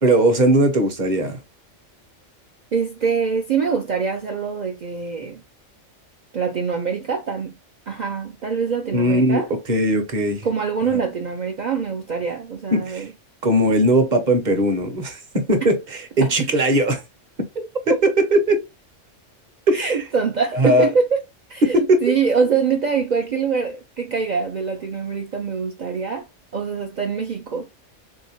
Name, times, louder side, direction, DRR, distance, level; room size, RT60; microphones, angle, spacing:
voice 1, 0.0-1.4 8.9-9.4 9.7-10.5 10.9-11.0 12.7-13.1 13.4-17.0 17.9-18.6 19.7-20.0 20.5-20.9 21.6-22.0, right 1 dB, 45° right, 0.8 m, -19 dB
voice 2, 2.7-5.4 6.3-7.5 7.9-9.5 10.4-13.1 16.2-16.5 17.6-18.0 19.7-21.2 21.5-26.3 26.5-27.7, right 5 dB, 70° right, 0.4 m, -24 dB
3.5 x 2.7 x 2.8 m
omnidirectional pair, 1.3 m